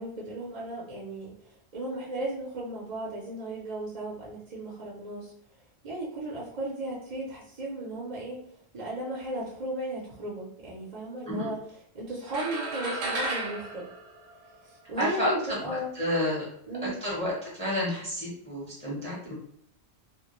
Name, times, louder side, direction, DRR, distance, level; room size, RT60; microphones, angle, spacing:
voice 1, 0.0-1.3 1.7-5.3 5.8-8.4 8.7-11.6 11.9-13.9 14.6-15.9 16.7-17.0, right 1 dB, 45° right, -4 dB, 0.6 m, -35 dB
sound 1, 12.3-14.9, right 2 dB, 80° right, 0.8 m, -34 dB
voice 2, 15.0-16.4 16.8-19.3, left 1 dB, 5° left, -6 dB, 0.7 m, -30 dB
2.2 x 2.1 x 2.9 m, 0.69 s
omnidirectional pair, 1.1 m